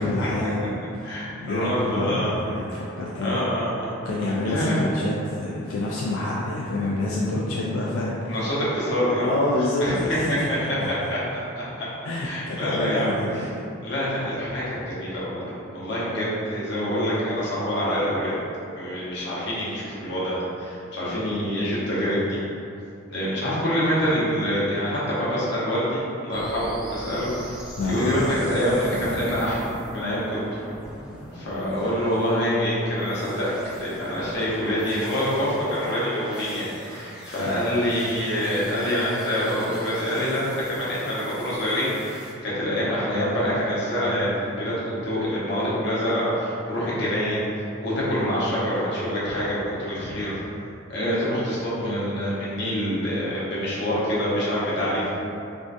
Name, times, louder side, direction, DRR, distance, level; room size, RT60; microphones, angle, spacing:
voice 1, 0.0-3.5 4.0-8.4 9.2-10.9 12.0-13.6 27.8-28.2, left 2 dB, 80° left, -5 dB, 0.3 m, -27 dB
voice 2, 1.0-2.5 3.2-4.0 4.4-4.8 8.3-9.3 9.8-10.4 10.9-13.4 13.8-18.4 18.8-22.4 23.1-27.6 27.9-29.7 29.9-30.6 31.3-33.5 33.8-50.4 50.9-55.1, equal, 55° left, -8 dB, 0.8 m, -26 dB
sound 1, 26.3-42.3, equal, 5° right, 0.4 m, -42 dB
3.5 x 2.5 x 2.5 m, 2.6 s
head